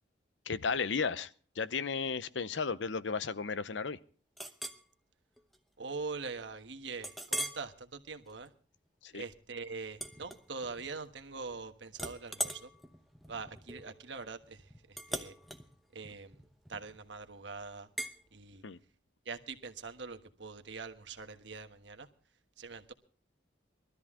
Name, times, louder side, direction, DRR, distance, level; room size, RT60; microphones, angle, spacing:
voice 1, 0.5-1.3 1.6-4.0 9.0-9.2 18.6-18.8, left 5 dB, 85° left, 0.7 m, -34 dB
Chink clink, 4.4-4.8 5.4-5.6 6.0-6.1 7.0-7.7 8.2-8.5 9.9-10.9 11.2-11.6 11.9-17.1 18.0-18.2, equal, ahead, 0.8 m, -41 dB
voice 2, 5.8-8.5 9.1-12.7 13.3-15.4 15.9-16.4 16.7-17.9 18.3-18.6 19.2-22.1 22.6-22.9, right 4 dB, 80° right, 1.4 m, -43 dB
21.5 x 13.0 x 3.7 m
head